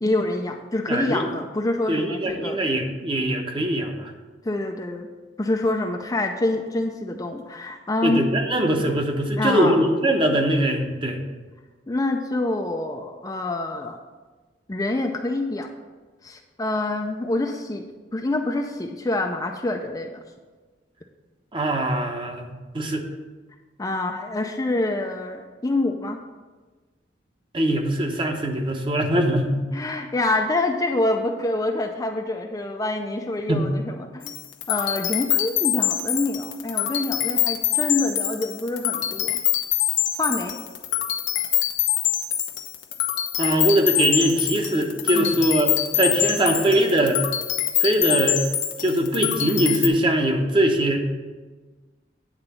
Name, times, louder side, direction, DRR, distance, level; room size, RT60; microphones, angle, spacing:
voice 1, 0.0-2.6 4.4-5.1 5.4-8.2 9.4-9.8 11.9-14.0 14.7-15.7 16.2-20.2 23.8-26.2 29.7-34.4 34.7-39.4 40.2-40.6 45.1-45.4, left 2 dB, 20° left, 3 dB, 0.5 m, -26 dB
voice 2, 0.9-1.3 1.9-4.1 8.0-11.2 21.5-23.0 27.5-29.6 33.5-33.7 43.4-47.2 47.8-48.4 48.8-51.0, right 1 dB, 25° right, 2 dB, 1.0 m, -22 dB
sound 1, 34.2-49.9, left 12 dB, 85° left, 0.9 m, -25 dB
9.7 x 3.9 x 6.9 m, 1.3 s
head